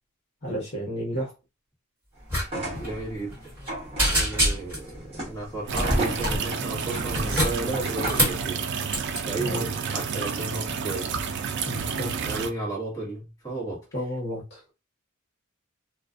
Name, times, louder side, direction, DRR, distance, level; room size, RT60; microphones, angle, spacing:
voice 1, 0.4-1.3 9.4-9.6 11.6-12.1 13.9-14.6, equal, 50° left, 1.0 m, -31 dB
sound 1, 2.3-2.5 2.7-2.9 3.3-3.7 4.0-4.9 5.7-6.4 7.0-8.4 8.9-9.2, equal, 10° right, 1.3 m, -25 dB
sound 2, 2.4-8.4, right 1 dB, 25° right, 1.1 m, -36 dB
voice 2, 2.8-3.5 4.0-8.7 9.2-11.1 12.2-13.8, right 2 dB, 15° left, 1.1 m, -33 dB
sound 3, 5.7-12.5, right 6 dB, 55° right, 0.3 m, -30 dB
2.4 x 2.2 x 2.4 m
head